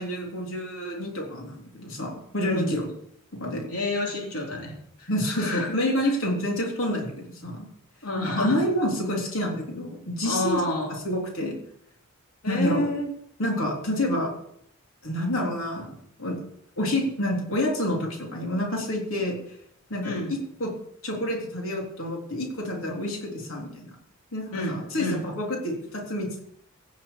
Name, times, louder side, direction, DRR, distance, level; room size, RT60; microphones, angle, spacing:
voice 1, 0.0-2.9 3.4-3.6 5.1-7.7 8.2-10.6 10.9-11.6 12.5-12.9 13.4-14.3 15.0-16.4 16.8-19.4 19.9-20.7 21.0-24.0 24.3-26.4, left 1 dB, 65° left, -1 dB, 3.6 m, -28 dB
voice 2, 3.5-4.7 5.0-5.1 5.3-5.7 8.0-8.7 10.2-11.0 12.4-13.1 20.0-20.4 24.5-25.2, left 1 dB, 85° left, -1 dB, 3.3 m, -29 dB
16.5 x 7.4 x 7.1 m, 0.72 s
head